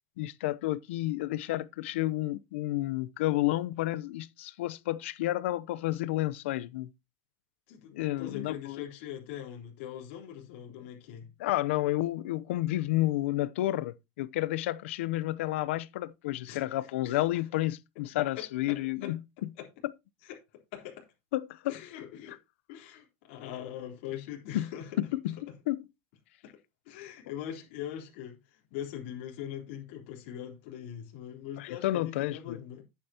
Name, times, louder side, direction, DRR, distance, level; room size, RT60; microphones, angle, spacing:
voice 1, 0.2-6.9 7.9-8.8 11.4-19.5 21.3-21.7 24.5-24.7 25.0-25.4 25.7-25.8 31.6-32.6, left 16 dB, 85° left, 0.7 m, -31 dB
voice 2, 7.7-11.3 16.5-16.7 17.0-17.2 18.4-19.1 19.6-19.7 20.2-20.4 20.7-21.1 21.7-22.4 22.7-25.0 25.5-25.6 26.4-26.6 26.9-32.8, left 10 dB, 70° left, 3.5 m, -42 dB
10.5 x 9.1 x 2.9 m
supercardioid pair, 150°, 6 cm